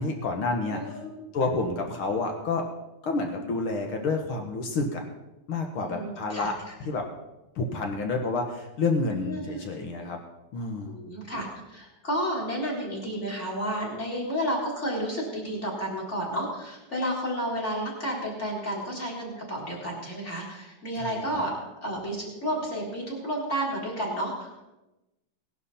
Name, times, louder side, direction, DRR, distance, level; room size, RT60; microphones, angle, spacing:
voice 1, 0.0-1.0 1.3-2.7 3.0-5.0 5.5-6.5 6.8-7.1 7.5-10.2 10.5-11.0 21.0-21.4, left 3 dB, 65° left, 3 dB, 1.2 m, -29 dB
voice 2, 0.6-1.2 5.8-6.7 9.2-9.7 10.9-21.5 21.8-24.6, equal, 20° left, -2 dB, 3.8 m, -31 dB
19.5 x 11.5 x 4.2 m, 0.98 s
omnidirectional pair, 4.3 m